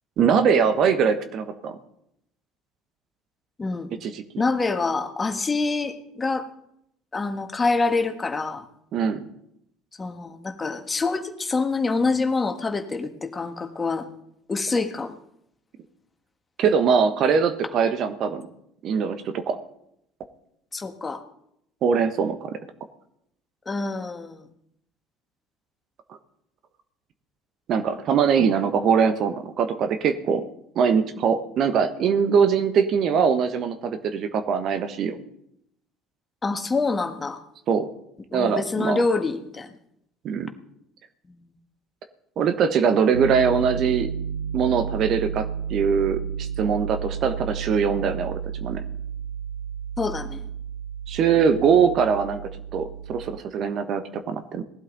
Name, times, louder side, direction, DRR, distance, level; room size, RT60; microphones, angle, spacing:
voice 1, 0.2-1.8 4.0-4.2 8.9-9.3 16.6-18.4 18.8-19.6 21.8-22.6 27.7-30.4 30.7-35.2 37.7-37.9 38.3-39.0 40.2-40.5 42.4-44.1 44.5-48.8 51.1-52.4 52.7-54.6, right 6 dB, 50° right, 9 dB, 1.2 m, -22 dB
voice 2, 3.6-3.9 4.4-6.5 7.1-8.6 10.0-14.1 14.5-15.1 20.7-21.2 23.6-24.4 36.4-37.4 38.3-39.7 50.0-50.5, left 3 dB, 25° left, 7 dB, 1.6 m, -26 dB
Piano, 43.1-53.4, right 7 dB, 85° right, 0.4 m, -32 dB
18.5 x 12.0 x 4.0 m, 0.77 s
figure-of-eight pair, 60°, 0 cm